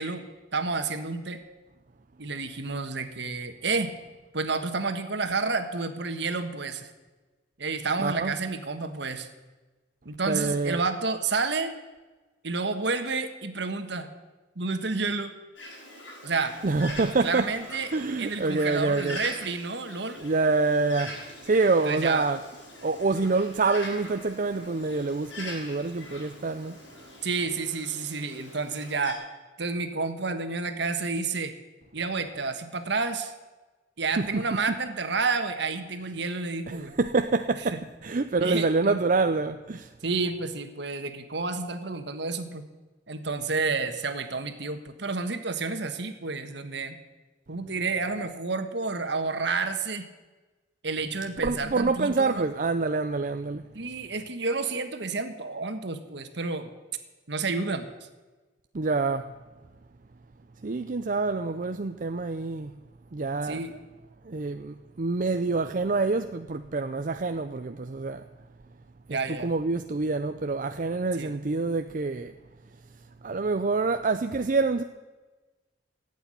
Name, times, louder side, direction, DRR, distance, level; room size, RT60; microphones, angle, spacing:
voice 1, 0.0-1.4 2.2-3.9 4.3-6.9 7.6-9.3 10.0-11.7 12.4-14.2 14.5-15.3 16.2-16.6 17.2-17.9 18.2-20.2 21.8-22.3 27.2-29.2 29.6-31.5 31.9-33.3 34.0-36.9 38.4-38.9 40.0-42.7 43.1-46.9 47.5-50.0 50.8-52.4 53.7-56.7 57.3-57.9 63.4-63.7 69.1-69.5 71.2-71.3, right 4 dB, 65° right, 1.6 m, -30 dB
voice 2, 8.0-8.3 10.3-10.8 16.6-17.5 17.9-19.2 20.2-22.4 22.8-26.8 34.2-34.6 36.7-39.9 51.4-53.7 58.7-59.3 60.6-62.8 63.1-63.8 64.2-68.2 69.1-72.3 73.2-74.8, right 3 dB, 45° right, 0.6 m, -27 dB
Bird, 15.6-29.1, left 1 dB, 90° left, 5.6 m, -43 dB
16.0 x 8.5 x 9.9 m
head